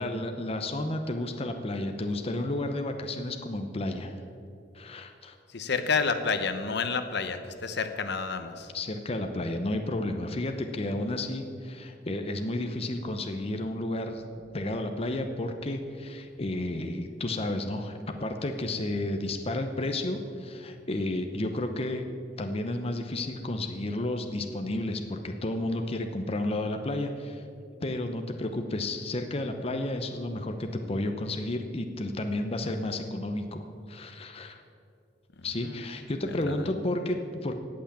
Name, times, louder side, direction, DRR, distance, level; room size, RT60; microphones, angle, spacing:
voice 1, 0.0-4.1 4.7-5.4 8.7-14.2 14.5-22.0 22.4-27.4 27.8-34.6 35.4-37.5, left 1 dB, 30° left, 5 dB, 0.7 m, -32 dB
voice 2, 5.5-8.7 35.6-35.8 36.5-36.6, left 5 dB, 65° left, 9 dB, 0.9 m, -29 dB
17.5 x 5.9 x 8.5 m, 2.5 s
head